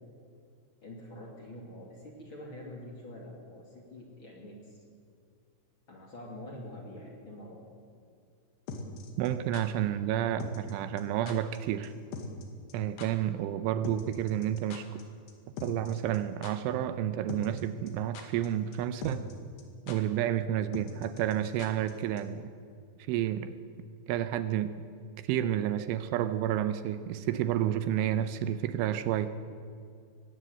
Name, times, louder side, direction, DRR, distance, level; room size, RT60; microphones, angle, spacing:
voice 1, 0.8-4.8 5.9-7.7, left 1 dB, 35° left, -1 dB, 2.5 m, -46 dB
sound 1, 8.7-9.6 10.4-10.7 11.0-11.1 11.3-11.6 11.8-11.9 12.1-12.4 12.7-12.8 13.0-13.1 13.8-15.0 15.3-15.4 15.6-16.2 16.4-16.5 17.3-17.6 17.9-18.5 18.7-18.8 19.0-19.3 19.6-19.7 19.9-20.0 20.7-21.9 22.2-22.3, left 4 dB, 60° left, 3.6 m, -40 dB
voice 2, 9.2-11.9 12.7-14.9 15.6-19.2 19.9-22.5 23.1-23.5 24.1-24.7 25.3-29.3, right 11 dB, 80° right, 11 dB, 3.0 m, -30 dB
20.5 x 16.5 x 8.0 m, 2.3 s
omnidirectional pair, 5.8 m